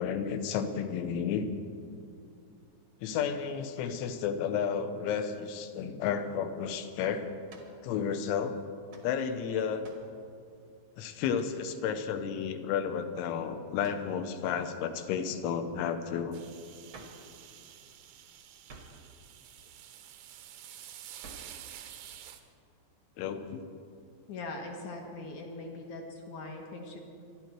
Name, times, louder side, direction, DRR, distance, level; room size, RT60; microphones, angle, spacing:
voice 1, 0.0-1.5 3.0-7.3 7.8-8.6 9.0-9.9 11.0-16.4 23.2-23.7, left 7 dB, 85° left, 8 dB, 3.4 m, -32 dB
fighting hits, 7.5-7.8 8.9-9.1 9.8-10.1 11.3-11.6 13.8-14.1 16.9-17.3 18.7-19.0 21.2-21.6, right 3 dB, 65° right, 1.2 m, -51 dB
sound 1, 16.3-22.4, right 11 dB, 90° right, 3.5 m, -49 dB
voice 2, 24.3-27.0, left 2 dB, 65° left, 2 dB, 1.9 m, -41 dB
26.5 x 11.5 x 4.5 m, 2.4 s
omnidirectional pair, 5.4 m